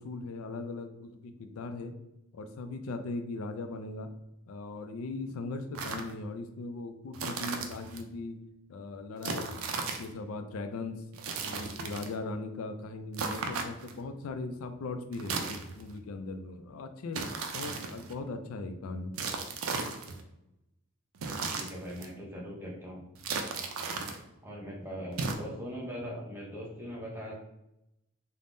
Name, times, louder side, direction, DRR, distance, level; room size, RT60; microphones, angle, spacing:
voice 1, 0.0-1.9 2.3-4.1 4.5-8.4 8.7-9.6 10.0-11.0 11.4-19.1, left 3 dB, 70° left, 8 dB, 0.4 m, -39 dB
sound 1, 5.8-6.1 7.1-8.0 9.2-10.1 11.1-12.2 13.1-14.0 15.1-16.0 17.1-18.1 19.1-20.2 21.2-22.1 23.2-24.2 25.1-25.4, right 4 dB, 65° right, 0.4 m, -36 dB
voice 2, 21.5-23.0 24.4-27.4, equal, 10° right, -4 dB, 0.6 m, -40 dB
3.4 x 2.1 x 2.5 m, 0.87 s
head